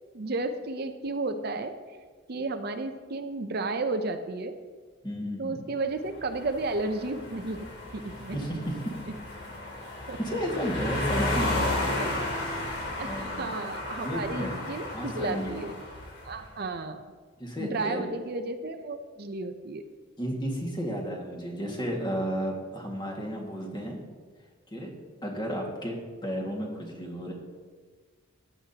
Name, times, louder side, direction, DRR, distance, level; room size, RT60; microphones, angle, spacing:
voice 1, 0.1-1.7 2.3-4.6 5.4-7.6 7.9-8.4 10.1-10.2 11.6-12.1 13.0-15.7 16.2-17.0 17.6-19.8, right 3 dB, 50° right, 7 dB, 0.6 m, -33 dB
voice 2, 5.0-5.6 8.3-8.8 10.2-12.3 13.0-13.5 14.0-14.6 14.9-15.5 17.4-18.1 20.2-24.0 24.7-24.9 25.2-27.3, equal, 20° left, -1 dB, 1.9 m, -33 dB
sound 1, 6.1-16.4, left 2 dB, 55° left, 2.5 m, -33 dB
14.5 x 10.0 x 2.9 m, 1.5 s
head